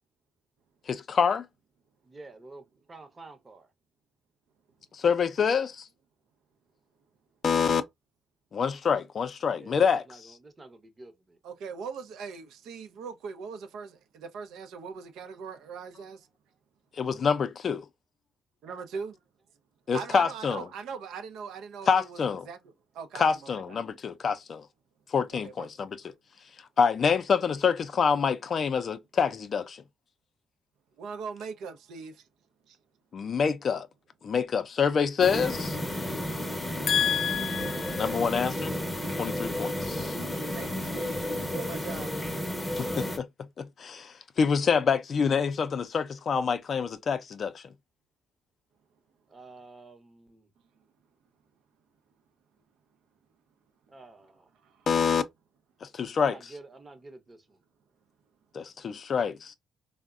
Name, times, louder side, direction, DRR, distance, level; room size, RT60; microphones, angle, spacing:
voice 1, 0.9-1.5 4.9-5.9 7.4-7.8 8.5-10.0 17.0-17.9 19.9-20.7 21.9-22.5 23.1-24.7 25.1-26.0 26.8-29.8 33.1-33.9 34.2-35.8 36.9-38.7 39.2-40.2 42.8-43.3 43.6-47.6 54.9-55.2 55.8-56.4 58.5-59.5, left 6 dB, 50° left, 0.4 m, -26 dB
voice 2, 2.0-3.7 9.6-11.4 49.3-50.5 53.9-54.5 56.2-57.6, right 2 dB, 25° right, 0.7 m, -49 dB
voice 3, 11.4-16.3 18.6-19.2 19.9-22.2 22.5-22.6 22.9-23.2 23.5-23.8 25.4-25.7 31.0-32.2 32.7-32.8 40.5-42.1 54.6-54.7, right 5 dB, 85° right, 0.5 m, -40 dB
sound 1, 35.2-43.2, left 1 dB, 10° left, 0.7 m, -32 dB
3.4 x 2.1 x 2.3 m
cardioid pair, 90°, 0 cm